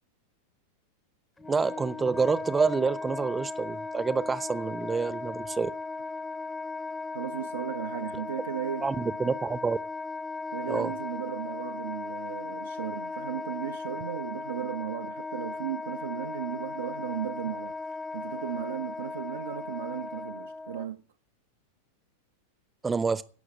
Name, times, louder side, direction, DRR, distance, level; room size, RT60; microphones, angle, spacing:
Wind instrument woodwind instrument, 1.4-20.9, left 3 dB, 10° left, 0.9 m, -37 dB
voice 1, 1.5-5.7 8.8-9.8 10.7-10.9 22.8-23.2, right 4 dB, 15° right, 0.8 m, -27 dB
voice 2, 7.1-9.2 10.5-21.0, right 10 dB, 65° right, 0.7 m, -36 dB
17.0 x 6.5 x 8.6 m
figure-of-eight pair, 90°, 0 cm